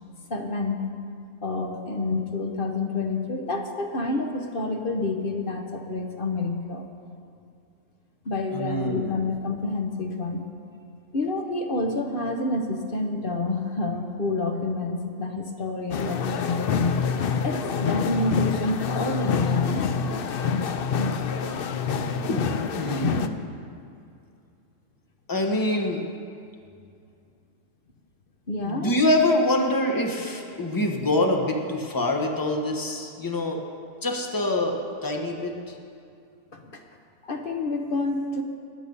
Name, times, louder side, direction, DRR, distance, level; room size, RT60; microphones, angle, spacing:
voice 1, 0.3-0.8 1.4-6.9 8.2-10.4 11.1-17.1 17.4-19.9 28.5-29.0 36.5-36.8 37.2-38.4, left 2 dB, 40° left, 3 dB, 1.1 m, -28 dB
voice 2, 8.5-9.2 22.3-23.5 25.3-26.0 28.6-33.6 34.0-35.7, left 1 dB, 15° left, 1 dB, 1.2 m, -25 dB
sound 1, 15.9-23.3, left 6 dB, 70° left, 0.5 m, -26 dB
21.0 x 8.8 x 5.5 m, 2.4 s
omnidirectional pair, 1.7 m